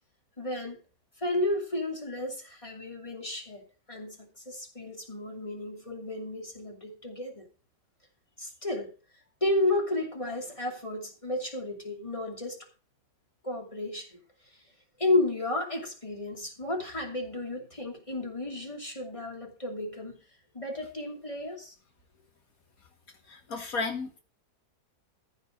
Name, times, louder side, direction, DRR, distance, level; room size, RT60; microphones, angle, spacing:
voice 1, 0.4-0.8 1.2-3.6 3.9-7.5 8.4-8.9 9.4-12.6 13.4-14.6 15.0-20.2 20.5-21.7, left 2 dB, 20° left, 0 dB, 2.8 m, -32 dB
voice 2, 23.3-24.2, left 4 dB, 60° left, 5 dB, 1.7 m, -33 dB
14.0 x 4.8 x 6.2 m, 0.36 s
omnidirectional pair, 1.7 m